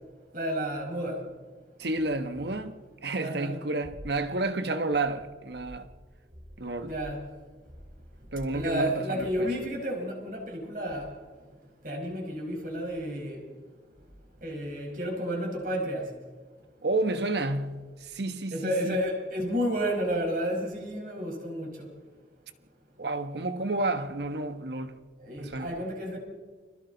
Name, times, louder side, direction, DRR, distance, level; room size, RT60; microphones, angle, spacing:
voice 1, 0.3-1.2 3.1-3.6 6.8-7.3 8.5-11.1 11.8-13.4 14.4-16.1 18.5-21.9 25.2-26.2, equal, 50° right, 5.1 m, -31 dB
voice 2, 1.8-2.7 3.0-5.9 6.6-6.9 8.3-9.5 16.8-19.0 23.0-25.0 25.4-25.7, right 2 dB, 65° right, 1.3 m, -30 dB
30.0 x 23.5 x 4.0 m
head